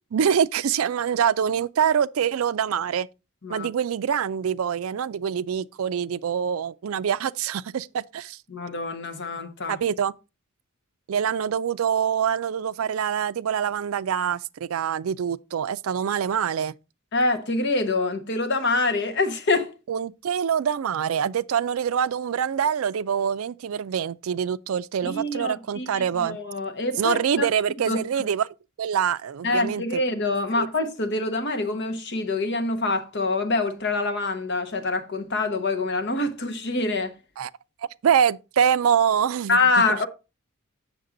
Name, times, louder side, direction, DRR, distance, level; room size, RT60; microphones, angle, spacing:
voice 1, 0.1-3.1 3.5-8.4 9.7-10.1 11.1-16.7 19.9-26.4 27.0-28.5 28.8-30.0 30.5-30.7 37.4-37.5 38.0-39.8, right 8 dB, 75° right, 0.4 m, -25 dB
voice 2, 8.5-9.8 17.1-19.7 25.0-27.5 27.9-28.0 29.4-37.1 39.5-40.1, left 3 dB, 55° left, 1.2 m, -25 dB
8.0 x 6.6 x 3.8 m
head